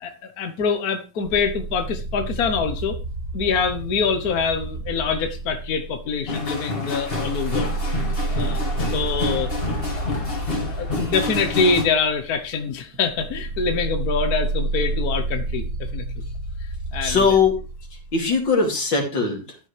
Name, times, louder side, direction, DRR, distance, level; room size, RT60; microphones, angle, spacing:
voice 1, 0.0-3.0 3.3-7.7 8.3-9.5 9.9-10.1 10.8-15.6 15.9-16.0 16.9-17.2, left 5 dB, 60° left, 7 dB, 1.4 m, -25 dB
sound 1, 1.2-6.4 6.9-18.5, right 2 dB, 60° right, 2.5 m, -30 dB
sound 2, 6.3-11.8, left 3 dB, 30° left, 2.2 m, -28 dB
voice 2, 17.0-17.6 18.1-19.6, left 5 dB, 85° left, 2 dB, 3.3 m, -20 dB
13.5 x 9.2 x 3.3 m, 0.31 s
omnidirectional pair, 2.0 m